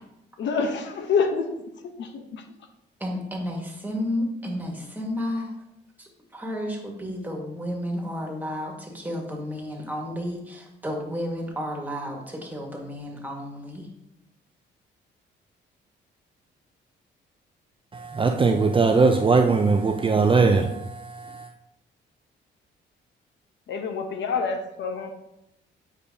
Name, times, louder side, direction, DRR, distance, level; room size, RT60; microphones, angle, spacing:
voice 1, 0.4-1.5 2.0-2.4 23.7-25.1, left 5 dB, 65° left, 0.9 m, -27 dB
voice 2, 3.0-5.5 6.3-13.8, left 1 dB, 10° right, 1.8 m, -32 dB
voice 3, 17.9-21.5, right 4 dB, 25° right, 0.5 m, -20 dB
8.4 x 5.1 x 2.8 m
cardioid pair, 90°, 20 cm